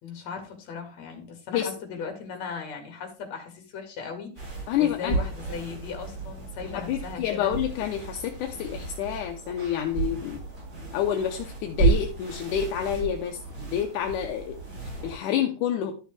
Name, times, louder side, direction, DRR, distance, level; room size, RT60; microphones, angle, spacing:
voice 1, 0.0-7.5, left 5 dB, 60° left, 4 dB, 3.2 m, -38 dB
sound 1, 4.4-15.2, right 4 dB, 30° right, 6.4 m, -32 dB
voice 2, 4.7-5.2 6.7-10.4 10.9-15.9, left 10 dB, 80° left, 4 dB, 2.3 m, -28 dB
12.0 x 6.0 x 3.4 m, 0.36 s
omnidirectional pair, 3.6 m